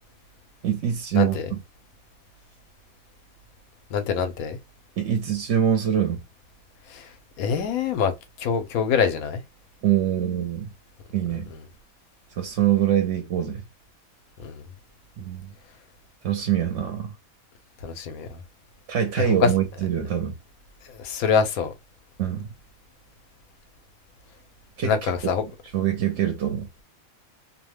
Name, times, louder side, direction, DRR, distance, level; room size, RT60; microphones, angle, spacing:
voice 1, 0.6-1.6 5.0-6.2 9.8-10.7 11.1-11.5 12.4-13.6 15.2-15.5 16.2-17.1 18.9-20.3 22.2-22.5 24.8-24.9 25.7-26.7, right 10 dB, 65° right, 1.0 m, -24 dB
voice 2, 1.1-1.5 3.9-4.6 6.9-7.1 7.4-9.4 11.5-11.6 14.4-14.6 17.8-18.4 19.2-19.5 20.9-21.7 24.8-25.4, left 6 dB, 85° left, 1.1 m, -25 dB
2.7 x 2.1 x 3.0 m
omnidirectional pair, 1.4 m